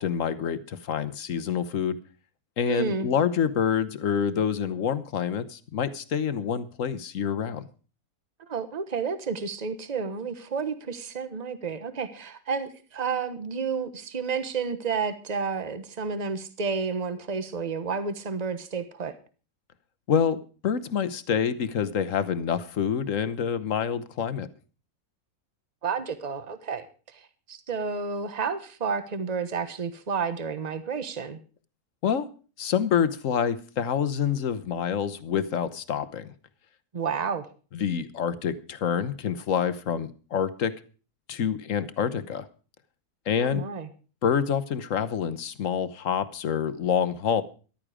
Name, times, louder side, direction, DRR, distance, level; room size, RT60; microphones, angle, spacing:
voice 1, 0.0-2.0 2.6-7.7 20.1-24.5 32.0-32.3 32.6-36.3 37.7-40.7 41.3-42.5 43.3-43.6 44.2-47.4, left 7 dB, 55° left, 13 dB, 1.2 m, -27 dB
voice 2, 2.6-3.1 8.5-19.2 25.8-26.9 27.1-31.4 36.9-37.5 43.4-43.9, right 5 dB, 30° right, 11 dB, 1.1 m, -31 dB
14.0 x 12.0 x 5.0 m, 0.37 s
omnidirectional pair, 1.7 m